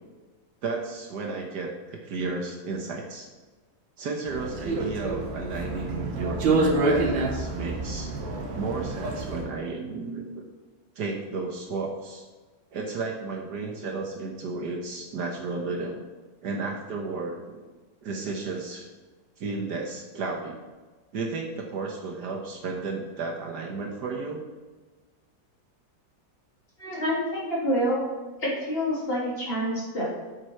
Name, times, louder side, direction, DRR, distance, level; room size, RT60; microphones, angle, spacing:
voice 1, 0.6-3.3 4.0-8.1 8.5-10.4 11.0-12.2 12.7-16.0 16.4-17.6 18.0-18.9 19.4-20.6 21.1-24.4, right 3 dB, 65° right, 1 dB, 1.5 m, -33 dB
sound 1, 4.3-9.4, right 2 dB, 90° right, 1.9 m, -27 dB
voice 2, 26.8-28.1 28.4-30.0, equal, 30° left, -7 dB, 3.1 m, -27 dB
7.9 x 6.0 x 4.5 m, 1.3 s
omnidirectional pair, 2.0 m